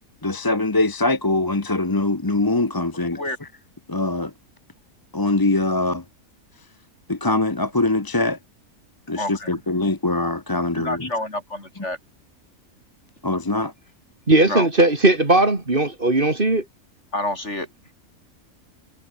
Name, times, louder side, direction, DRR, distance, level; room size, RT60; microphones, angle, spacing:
voice 1, 0.2-3.5 3.9-4.3 5.1-6.0 7.1-8.4 9.1-11.1 13.2-13.7, left 2 dB, 15° left, 0.9 m, -23 dB
voice 2, 2.9-3.4 9.2-9.6 10.7-12.0 14.4-14.7 17.1-17.7, left 1 dB, 50° left, 6.4 m, -28 dB
voice 3, 14.3-16.6, right 2 dB, 35° right, 3.0 m, -18 dB
omnidirectional pair, 1.6 m